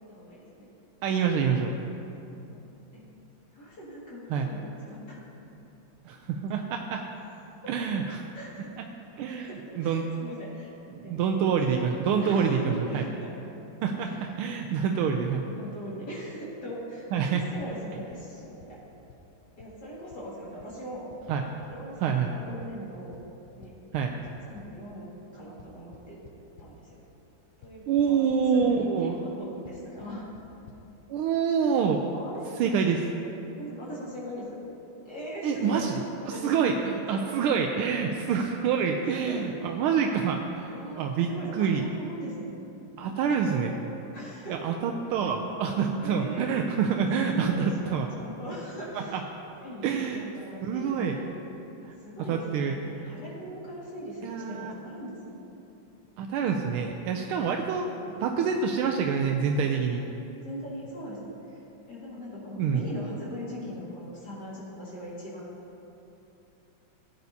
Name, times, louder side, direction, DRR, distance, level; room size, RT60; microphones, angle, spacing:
voice 1, 0.0-0.7 2.5-2.6 2.9-3.0 3.5-5.2 7.1-7.2 7.5-7.7 8.3-8.8 9.2-10.8 11.0-11.5 12.2-13.3 14.0-14.3 14.9-15.1 15.5-18.8 19.6-21.1 21.7-23.2 23.6-23.7 24.5-26.2 26.6-27.0 27.6-30.3 32.1-32.7 33.6-34.5 35.0-35.9 36.3-36.7 37.1-37.4 37.9-38.1 39.1-39.5 40.1-40.2 40.7-42.5 43.0-43.7 44.1-44.8 46.0-46.5 47.3-49.2 49.6-51.5 51.8-55.4 60.4-61.6 61.9-65.6, equal, 50° left, -7 dB, 2.6 m, -40 dB
voice 2, 1.0-1.7 4.3-4.5 6.0-7.0 7.7-8.2 9.2-9.5 9.8-10.1 10.9-12.5 12.9-13.0 13.8-15.4 17.1-17.4 21.3-21.4 22.0-22.3 23.9-24.1 27.9-29.1 31.1-32.0 32.6-33.0 35.4-35.9 36.4-36.7 37.1-40.7 41.0-41.3 41.6-41.8 43.0-43.7 44.5-48.1 49.8-50.2 50.6-51.1 52.3-52.7 54.2-54.7 56.2-57.9 58.2-60.0 62.6-62.8, right 6 dB, 85° right, 3 dB, 1.5 m, -26 dB
sound 1, 17.6-17.7 18.1-18.2 18.6-18.7 19.1-19.2 19.6-19.7 20.1-20.2 20.6-20.7 21.1-21.2 21.6-21.7 22.1-22.2 22.6-22.7 23.1-23.2 23.6-24.6 25.6-26.7 27.6-27.7 28.0-28.4 28.6-28.7 29.7-29.8 30.0-30.1 30.4-30.5 30.7-30.8, left 7 dB, 75° left, 1.5 m, -50 dB
16.0 x 9.5 x 2.7 m, 2.9 s
omnidirectional pair, 2.4 m